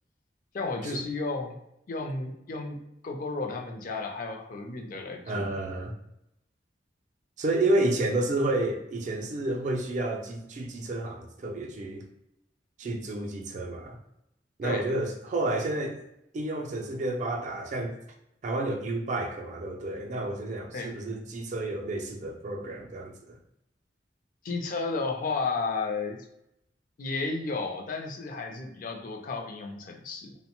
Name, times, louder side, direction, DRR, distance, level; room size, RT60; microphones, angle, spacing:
voice 1, 0.5-1.5 1.9-2.8 3.0-5.5 14.6-14.8 20.7-20.9 24.4-26.2 27.0-30.4, left 3 dB, 50° left, 3 dB, 0.4 m, -33 dB
voice 2, 5.3-5.9 7.4-12.1 12.8-14.0 14.6-16.0 16.3-18.0 18.4-23.4, right 2 dB, 45° right, 3 dB, 0.4 m, -30 dB
2.8 x 2.1 x 2.9 m, 0.82 s
head